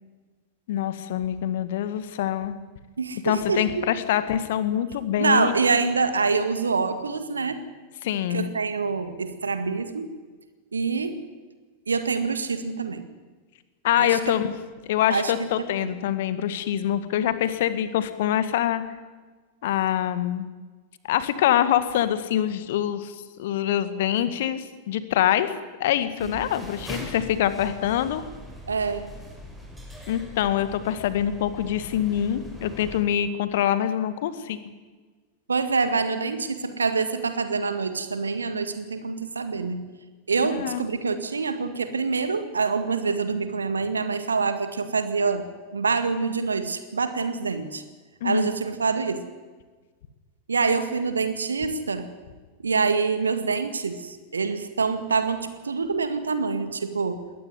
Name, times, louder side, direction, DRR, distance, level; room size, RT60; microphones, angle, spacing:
voice 1, 0.7-2.5 3.2-5.5 8.0-8.5 13.8-14.5 14.9-18.8 19.6-20.5 21.0-25.5 25.8-28.2 30.1-34.6 40.4-40.8 48.2-48.5, left 11 dB, 55° left, 12 dB, 1.9 m, -25 dB
voice 2, 3.0-3.9 5.2-7.6 8.3-10.1 10.7-11.2 11.9-13.1 14.0-14.2 15.1-15.5 15.8-15.9 26.2-26.7 28.7-29.1 35.5-39.8 40.3-45.4 45.7-47.8 48.2-49.2 50.5-52.1 52.6-57.2, right 4 dB, 75° right, 10 dB, 1.9 m, -26 dB
sound 1, 26.2-33.0, right 1 dB, 5° right, 7.4 m, -41 dB
21.0 x 18.5 x 9.6 m, 1.3 s
figure-of-eight pair, 90°, 0 cm